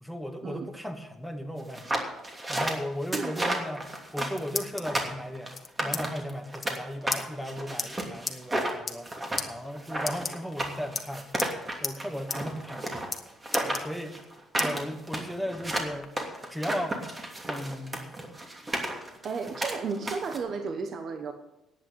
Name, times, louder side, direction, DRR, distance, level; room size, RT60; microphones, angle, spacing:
voice 1, 0.0-2.0 2.5-3.9 4.1-5.5 5.8-9.1 9.5-11.3 11.8-13.0 13.6-14.2 14.6-16.1 16.5-17.0 17.5-18.0, equal, 5° right, 5 dB, 2.0 m, -36 dB
sound 1, 1.7-6.8 7.1-20.4, right 1 dB, 25° right, 2.9 m, -33 dB
sound 2, 4.1-5.0 5.5-6.0 6.3-6.4 6.6-6.8 7.1-7.2 7.8-7.9 8.3-8.4 8.8-9.1 9.4-9.5 10.0-10.6 11.0-11.5 11.8-12.0 12.3-12.4 12.7-13.2 13.5-14.2 14.6-14.7 15.2-16.1, left 4 dB, 30° left, 1.5 m, -34 dB
voice 2, 19.2-21.3, right 5 dB, 55° right, 7 dB, 1.1 m, -33 dB
11.0 x 8.7 x 7.9 m, 0.92 s
supercardioid pair, 80°, 0 cm